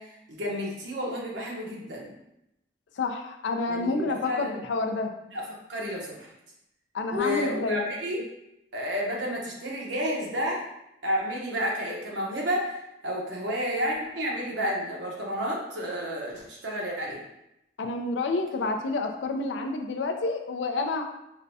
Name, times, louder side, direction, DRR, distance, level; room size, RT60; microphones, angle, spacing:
voice 1, 0.0-2.1 3.7-4.6 5.3-6.3 7.1-8.2 8.7-10.6 11.0-17.2, equal, 85° right, -2 dB, 0.9 m, -31 dB
voice 2, 3.0-5.1 6.9-7.8 17.8-21.1, left 3 dB, 85° left, 5 dB, 0.4 m, -29 dB
5.0 x 2.2 x 2.6 m, 0.85 s
head